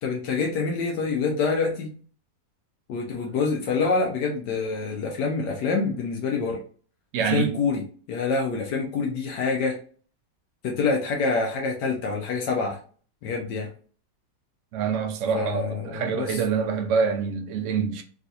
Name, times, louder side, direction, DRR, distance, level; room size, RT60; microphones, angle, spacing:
voice 1, 0.0-1.9 2.9-6.6 7.3-7.8 8.1-9.8 10.6-12.8 13.2-13.7 15.3-16.4, left 4 dB, 80° left, 1.2 m, -26 dB
voice 2, 7.1-7.6 14.7-18.0, right 6 dB, 75° right, 0.7 m, -26 dB
3.6 x 2.4 x 2.7 m
omnidirectional pair, 1.9 m